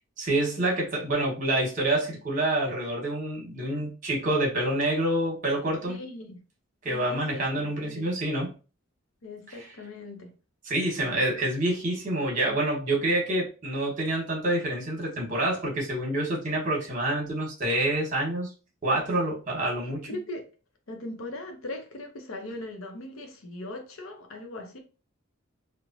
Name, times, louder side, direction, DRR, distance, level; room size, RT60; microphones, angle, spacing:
voice 1, 0.2-6.0 6.8-8.5 9.5-9.7 10.6-18.5 18.8-20.1, right 1 dB, 40° right, 1.1 m, -27 dB
voice 2, 5.9-6.4 6.9-8.2 9.2-10.3 20.0-20.4 20.9-24.8, left 1 dB, 85° left, 0.7 m, -39 dB
3.1 x 2.1 x 2.5 m
head